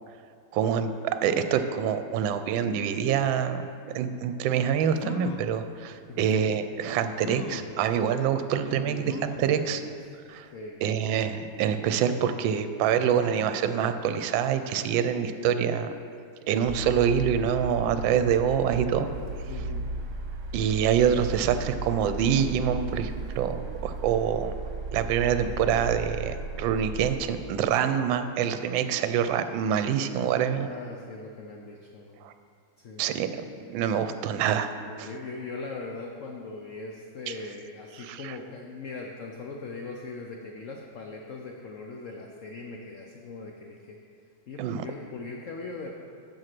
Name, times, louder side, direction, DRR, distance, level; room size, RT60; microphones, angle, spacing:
voice 1, 0.5-3.7 3.9-9.8 10.3-10.5 10.8-15.9 16.5-19.1 20.5-24.5 24.9-30.7 32.2-32.3 33.0-33.4 33.7-34.7 35.0-35.1 38.1-38.2 44.6-44.9, right 8 dB, 80° right, 10 dB, 1.3 m, -26 dB
sound 1, 4.6-4.7 5.0-5.6 6.3-6.4 7.2-7.8 9.0-9.5 10.0-10.1 10.4-10.5, left 7 dB, 85° left, 1.4 m, -39 dB
voice 2, 8.7-9.0 9.4-9.9 10.5-10.8 19.5-19.9 30.5-32.2 32.8-33.2 34.8-44.0 44.5-45.9, left 3 dB, 65° left, 1 dB, 0.8 m, -40 dB
sound 2, 16.7-27.1, right 4 dB, 60° right, 1.3 m, -35 dB
7.8 x 7.3 x 6.0 m, 2.3 s
omnidirectional pair, 2.1 m